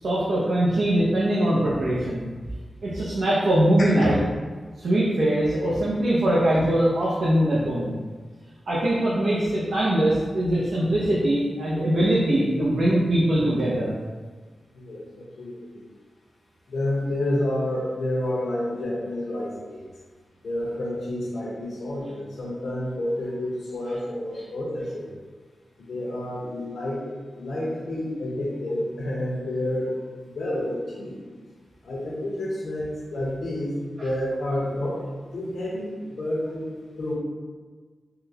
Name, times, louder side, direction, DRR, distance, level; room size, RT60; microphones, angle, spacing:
voice 1, 0.0-2.3 2.8-4.2 4.8-7.9 8.7-13.9, right 1 dB, 70° right, -7 dB, 0.6 m, -22 dB
voice 2, 14.7-15.8 16.7-19.8 20.4-25.2 25.8-29.9 30.2-31.2 31.8-35.0 35.3-36.6 37.0-37.1, left 1 dB, 80° left, -5 dB, 0.8 m, -29 dB
3.7 x 2.2 x 2.7 m, 1.4 s
cardioid pair, 60°, 0 cm